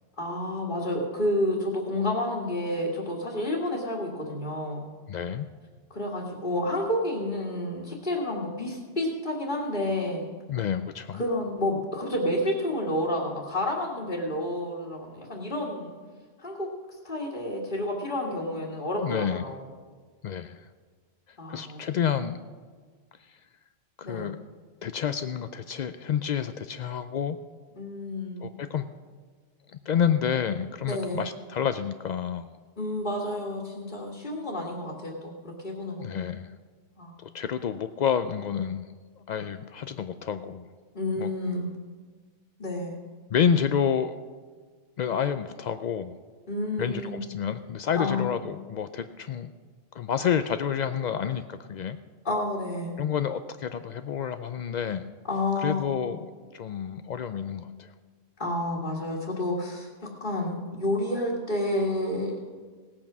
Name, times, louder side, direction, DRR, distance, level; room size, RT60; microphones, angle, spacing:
voice 1, 0.2-4.9 5.9-10.3 11.1-15.9 16.4-16.7 17.0-19.6 21.4-21.8 24.0-24.3 27.8-28.5 30.9-31.2 32.8-36.1 37.0-37.1 40.9-41.7 42.6-43.0 46.5-47.2 48.0-48.3 52.2-52.9 55.3-55.9 57.0-57.1 57.6-57.7 58.4-62.4, left 1 dB, 40° left, -5 dB, 1.9 m, -30 dB
voice 2, 5.1-5.5 10.5-11.2 19.0-19.4 20.2-20.7 21.5-22.4 23.3-23.4 24.0-24.4 24.8-27.4 28.4-28.8 29.9-32.5 36.0-36.5 37.2-38.9 39.3-40.7 41.2-41.3 43.3-44.1 45.0-46.1 46.8-49.5 49.9-52.0 53.0-55.0 55.6-56.3 56.5-57.9, left 8 dB, 80° left, 10 dB, 0.4 m, -29 dB
17.5 x 8.7 x 6.0 m, 1.5 s
omnidirectional pair, 1.3 m